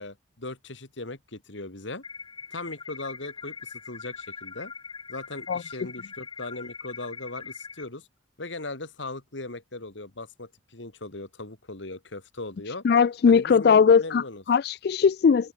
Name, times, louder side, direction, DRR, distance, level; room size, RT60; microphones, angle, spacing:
voice 1, 0.0-2.0 2.5-4.7 5.1-8.1 8.4-12.8 13.3-14.4, left 2 dB, 90° left, 2.7 m, -38 dB
sound 1, 2.0-7.8, left 5 dB, 25° left, 0.9 m, -41 dB
voice 2, 12.8-15.5, left 6 dB, 55° left, 0.3 m, -20 dB
head